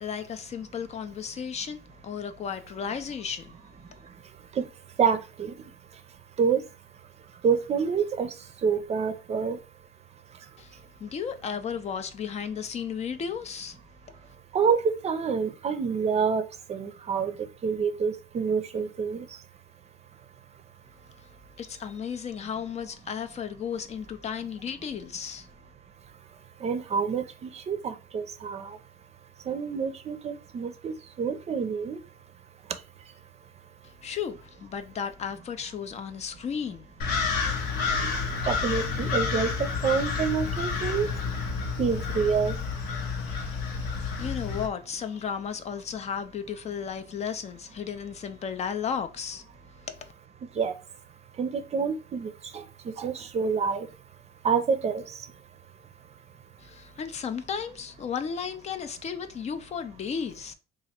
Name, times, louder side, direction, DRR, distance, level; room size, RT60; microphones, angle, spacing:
voice 1, 0.0-3.6 10.6-13.8 21.6-25.5 33.8-36.9 44.2-49.4 49.8-50.1 56.6-60.5, left 7 dB, 40° left, 0.5 m, -34 dB
voice 2, 5.0-5.5 6.4-6.6 7.4-8.3 8.6-9.6 14.5-16.4 16.7-17.3 17.6-19.3 26.6-28.8 29.5-32.0 38.4-39.5 39.8-41.1 41.8-42.5 50.6-50.7 51.4-53.9 54.4-55.0, right 6 dB, 40° right, 0.5 m, -27 dB
sound 1, 37.0-44.7, left 5 dB, 85° left, 0.9 m, -29 dB
3.0 x 2.4 x 4.3 m
cardioid pair, 110°, 17 cm